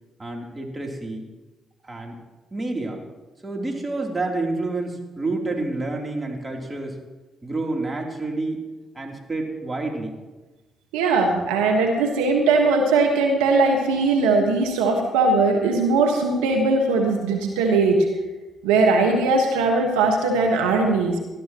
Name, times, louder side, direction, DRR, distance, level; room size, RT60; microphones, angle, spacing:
voice 1, 0.2-1.2 1.8-2.2 2.5-3.0 3.4-7.0 7.4-8.6 9.0-10.2, right 2 dB, 25° right, 0 dB, 3.3 m, -28 dB
voice 2, 10.9-18.1 18.6-21.1, right 3 dB, 85° right, 2 dB, 1.4 m, -20 dB
19.0 x 12.5 x 3.1 m, 1.2 s
hypercardioid pair, 50°, 0 cm